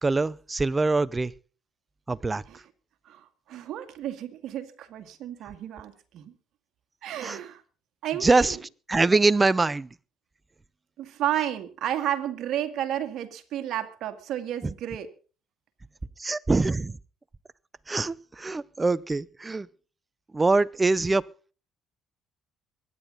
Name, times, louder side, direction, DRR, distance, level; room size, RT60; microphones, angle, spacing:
voice 1, 0.0-1.3 2.1-2.4 7.2-7.4 8.2-8.6 8.9-9.9 14.6-14.7 16.2-17.0 17.9-19.7 20.3-21.2, right 3 dB, 20° right, 0.7 m, -23 dB
voice 2, 3.1-6.3 7.0-7.6 8.0-8.6 11.0-15.1, right 11 dB, 70° right, 2.0 m, -32 dB
23.5 x 10.0 x 4.0 m
supercardioid pair, 70°, 0 cm